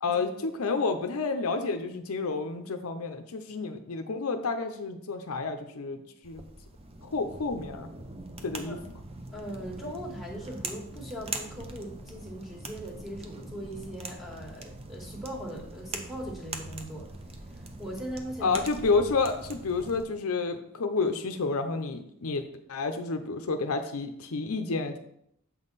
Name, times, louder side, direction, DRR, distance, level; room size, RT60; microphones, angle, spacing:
voice 1, 0.0-6.4 7.0-7.9 8.4-8.8 18.4-22.4 22.7-25.0, left 4 dB, 70° left, 7 dB, 0.6 m, -30 dB
sound 1, 6.2-20.0, right 2 dB, 25° right, 0.7 m, -42 dB
voice 2, 9.3-17.1 17.5-18.6, right 1 dB, ahead, -2 dB, 1.6 m, -40 dB
7.5 x 5.4 x 4.0 m, 0.73 s
head